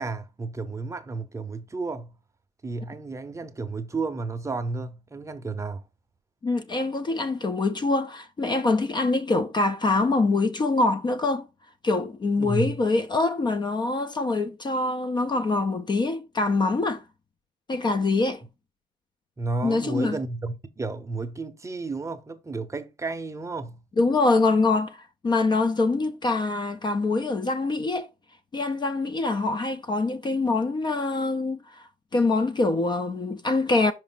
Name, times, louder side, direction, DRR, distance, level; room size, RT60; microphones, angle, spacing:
voice 1, 0.0-2.2 2.6-5.8 12.4-12.8 19.4-23.8, right 3 dB, 15° right, 0.7 m, -32 dB
voice 2, 6.4-11.5 11.8-17.0 17.7-18.4 19.6-20.2 24.0-28.1 28.5-33.9, left 3 dB, 25° left, 0.5 m, -24 dB
5.3 x 4.9 x 3.9 m
cardioid pair, 110°, 17 cm